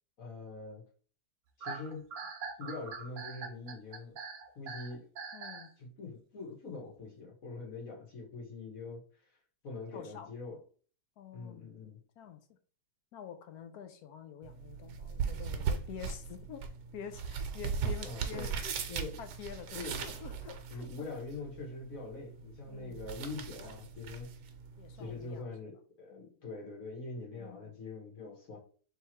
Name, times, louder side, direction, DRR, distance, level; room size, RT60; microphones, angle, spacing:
voice 1, 0.2-0.8 1.6-2.0 2.6-4.2 4.6-5.1 5.8-9.0 9.6-10.6 11.3-12.0 18.0-18.5 18.9-19.2 19.7-20.2 20.7-24.3 25.0-28.6, left 3 dB, 55° left, 1.8 m, -43 dB
sound 1, 1.6-5.7, right 5 dB, 60° right, 0.9 m, -43 dB
voice 2, 5.3-5.7 9.9-10.3 11.2-11.7 12.2-12.6 13.1-16.7 16.9-18.9 19.2-21.1 22.7-23.1 24.8-25.5 26.1-26.4 27.3-27.7, left 8 dB, 70° left, 1.1 m, -48 dB
sound 2, 14.4-25.4, right 6 dB, 75° right, 1.2 m, -39 dB
3.5 x 3.0 x 4.3 m
omnidirectional pair, 1.8 m